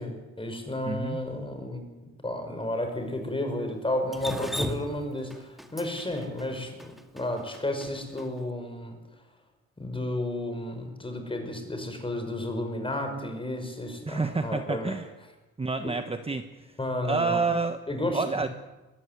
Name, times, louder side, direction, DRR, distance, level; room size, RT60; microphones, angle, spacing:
voice 1, 0.0-9.0 9.8-14.9 15.8-15.9 16.8-17.4 17.9-18.4, left 1 dB, 15° left, 6 dB, 5.7 m, -32 dB
voice 2, 0.8-1.2 14.0-15.1 15.6-16.8 17.0-17.8 18.1-18.5, right 4 dB, 20° right, 8 dB, 1.2 m, -29 dB
Drip, 4.1-8.3, equal, ahead, 2.1 m, -36 dB
21.5 x 15.5 x 9.7 m, 1.1 s
cardioid pair, 90°, 30 cm